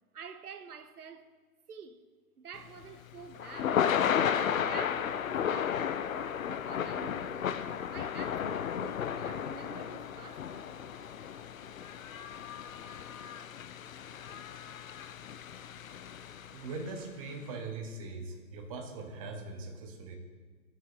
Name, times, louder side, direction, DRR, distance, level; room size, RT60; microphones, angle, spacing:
voice 1, 0.1-1.3 1.7-2.1 2.4-3.9 4.5-7.5 7.9-10.8, right 6 dB, 90° right, 0.8 m, -48 dB
Thunder / Rain, 2.6-16.9, left 8 dB, 65° left, 0.6 m, -34 dB
voice 2, 16.5-20.2, right 3 dB, 25° right, 0.9 m, -41 dB
15.0 x 6.5 x 3.8 m
hypercardioid pair, 145°, 44 cm